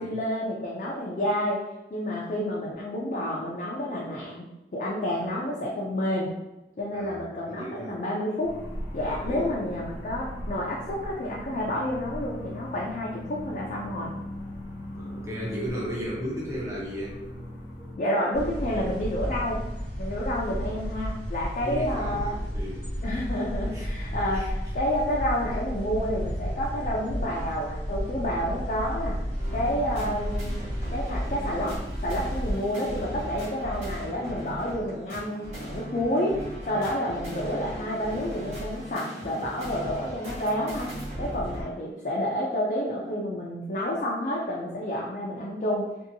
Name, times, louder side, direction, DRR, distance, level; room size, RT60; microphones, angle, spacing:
voice 1, 0.0-1.6 1.9-6.3 6.8-8.6 8.9-14.1 18.0-19.6 20.0-22.4 23.0-29.2 29.5-30.6 30.9-40.9 41.2-45.9, equal, 45° left, -4 dB, 0.4 m, -29 dB
voice 2, 7.5-8.0 9.2-9.5 14.9-17.2 21.6-22.9 23.6-24.5, equal, 15° right, -5 dB, 0.6 m, -35 dB
sound 1, 8.4-18.0, equal, 90° left, 0.6 m, -39 dB
sound 2, 18.3-32.5, equal, 85° right, 1.0 m, -32 dB
sound 3, 29.3-41.6, equal, 40° right, 1.2 m, -37 dB
2.6 x 2.6 x 2.6 m, 0.98 s
head